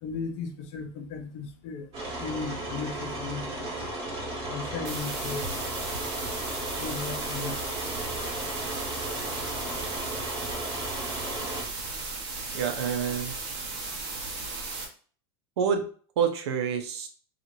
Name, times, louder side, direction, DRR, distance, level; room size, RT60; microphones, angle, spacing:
voice 1, 0.0-1.9 2.2-3.7 4.5-6.0 6.8-7.7, left 5 dB, 45° left, 5 dB, 0.5 m, -36 dB
sound 1, 1.9-11.6, right 1 dB, 30° right, 1.2 m, -35 dB
sound 2, 4.8-14.8, right 3 dB, 50° right, 0.9 m, -36 dB
voice 2, 12.5-13.3 15.6-15.8 16.2-17.1, right 7 dB, 85° right, 5 dB, 0.6 m, -27 dB
2.9 x 2.4 x 2.6 m, 0.43 s
supercardioid pair, 155°, 14 cm